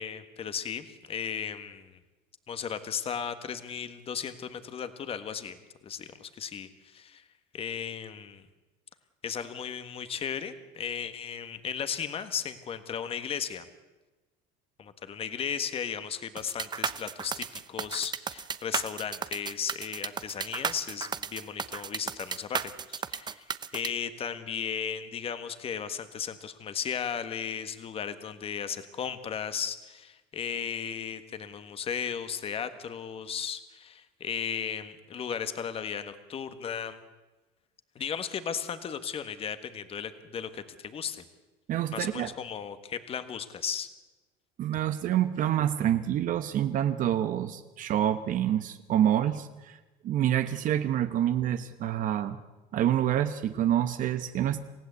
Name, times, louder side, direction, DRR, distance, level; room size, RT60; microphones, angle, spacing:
voice 1, 0.0-2.0 2.5-5.6 5.8-7.2 7.5-8.4 9.2-13.7 14.8-23.5 23.7-37.0 37.9-41.2 41.9-43.9, left 7 dB, 35° left, 10 dB, 1.5 m, -35 dB
sound 1, 16.4-23.9, right 7 dB, 25° right, 0.7 m, -34 dB
voice 2, 41.7-42.3 44.6-49.8 50.0-52.4 52.7-54.6, right 11 dB, 50° right, 10 dB, 1.1 m, -27 dB
28.0 x 16.0 x 8.2 m, 1.1 s
cardioid pair, 135°, 18 cm